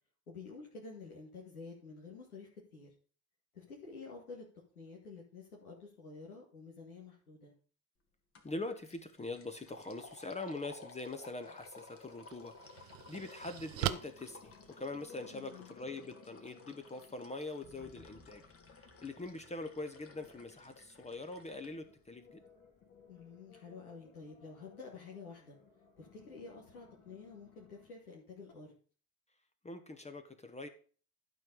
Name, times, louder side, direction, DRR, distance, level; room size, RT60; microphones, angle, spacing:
voice 1, 0.3-2.9 3.5-4.5 4.8-7.5 15.3-15.7 23.1-25.6 26.0-28.7, left 4 dB, 85° left, -3 dB, 2.0 m, -50 dB
sound 1, 8.3-8.6 8.9-21.7, left 4 dB, 30° left, 1.7 m, -56 dB
voice 2, 8.4-18.4 18.7-22.4 29.6-30.7, left 2 dB, 15° left, 7 dB, 1.1 m, -43 dB
sound 2, 11.6-11.7 12.3-15.3, right 15 dB, 65° right, 0.7 m, -40 dB
sound 3, 12.6-27.9, left 5 dB, 50° left, 2.6 m, -61 dB
12.0 x 4.6 x 5.3 m, 0.41 s
figure-of-eight pair, 60°, 43 cm